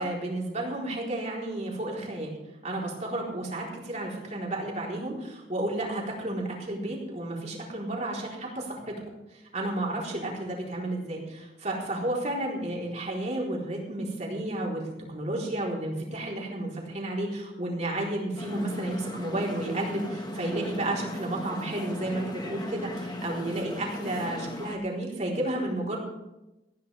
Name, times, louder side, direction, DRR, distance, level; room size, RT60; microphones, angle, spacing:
voice 1, 0.0-2.3 2.6-8.9 9.3-14.8 15.1-26.0, right 1 dB, 40° right, -2 dB, 4.0 m, -32 dB
sound 1, 18.4-24.8, left 1 dB, 25° left, 1.6 m, -37 dB
19.5 x 15.0 x 3.5 m, 0.96 s
head